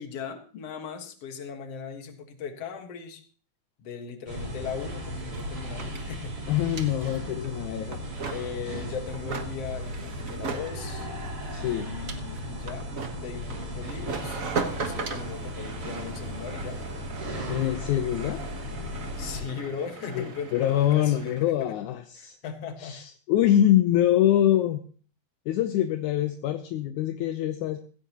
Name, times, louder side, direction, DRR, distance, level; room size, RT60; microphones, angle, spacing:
voice 1, 0.0-3.2 3.8-6.3 8.3-11.1 11.6-12.9 13.2-14.5 14.8-16.8 19.2-21.7 22.2-23.0, left 6 dB, 55° left, 6 dB, 2.5 m, -38 dB
sound 1, 4.3-19.4, equal, 40° right, 4.6 m, -36 dB
sound 2, 4.6-4.7 4.9-21.5, right 5 dB, 65° right, 0.8 m, -39 dB
voice 2, 6.5-8.0 11.5-11.9 17.5-18.4 20.2-22.4 22.8-24.8 25.5-27.8, left 12 dB, 75° left, 8 dB, 2.1 m, -24 dB
15.5 x 15.5 x 3.0 m, 0.40 s
omnidirectional pair, 3.6 m